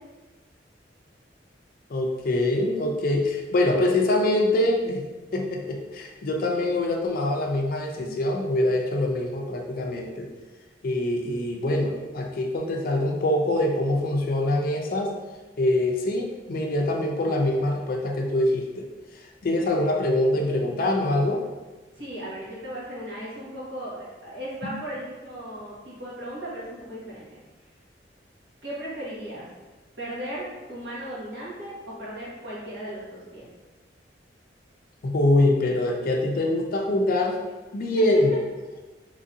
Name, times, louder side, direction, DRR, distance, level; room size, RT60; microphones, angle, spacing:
voice 1, 1.9-5.0 5.3-10.3 10.8-15.1 15.6-18.8 19.4-21.4 24.6-24.7 35.0-37.4 37.7-38.3, left 1 dB, 55° left, 1 dB, 0.4 m, -24 dB
voice 2, 21.9-27.4 28.6-29.5 30.0-33.5 38.0-38.1, equal, 80° right, -7 dB, 1.3 m, -36 dB
3.0 x 2.7 x 2.5 m, 1.2 s
head